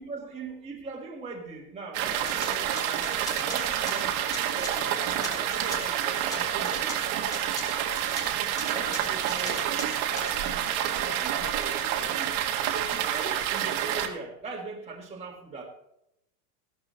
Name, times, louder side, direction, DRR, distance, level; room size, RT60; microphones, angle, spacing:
voice 1, 0.0-4.2 4.5-7.2 8.7-9.7 10.1-12.3 12.7-15.7, right 4 dB, 15° right, -2 dB, 1.5 m, -41 dB
sound 1, 1.9-14.1, right 10 dB, 60° right, 1.6 m, -28 dB
sound 2, 2.2-6.0 6.3-10.4, left 1 dB, 5° left, 1.7 m, -40 dB
14.5 x 12.5 x 3.2 m, 0.81 s
supercardioid pair, 150°, 48 cm